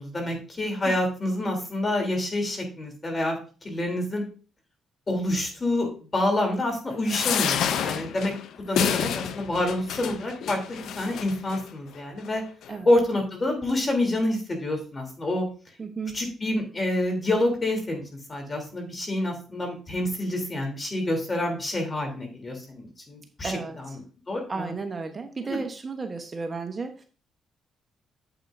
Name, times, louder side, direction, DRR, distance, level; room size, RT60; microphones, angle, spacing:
voice 1, 0.0-3.3 3.6-4.2 5.1-8.3 8.7-12.4 12.8-15.4 16.1-18.0 18.3-24.0 24.3-24.7 25.4-25.6, left 1 dB, 30° left, 3 dB, 3.3 m, -27 dB
sound 1, 7.0-11.6 12.2-12.4 12.6-12.7, left 8 dB, 75° left, 0.6 m, -29 dB
voice 2, 15.8-16.2 23.4-24.0 24.5-27.1, right 4 dB, 35° right, 5 dB, 1.1 m, -33 dB
8.9 x 7.8 x 2.7 m, 0.37 s
cardioid pair, 90°, 0 cm